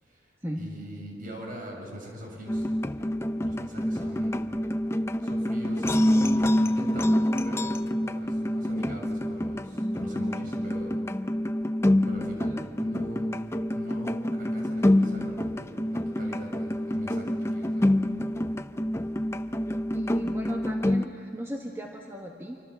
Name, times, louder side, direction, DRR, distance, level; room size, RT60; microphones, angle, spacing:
voice 1, 0.0-2.7 3.4-4.4 5.2-10.9 12.0-13.4 13.7-18.0, equal, 50° right, 0 dB, 7.1 m, -42 dB
sound 1, 2.5-21.1, left 1 dB, 15° left, 0.6 m, -27 dB
voice 2, 19.9-22.6, equal, 15° right, 0 dB, 1.6 m, -36 dB
26.5 x 25.0 x 7.2 m, 2.6 s
head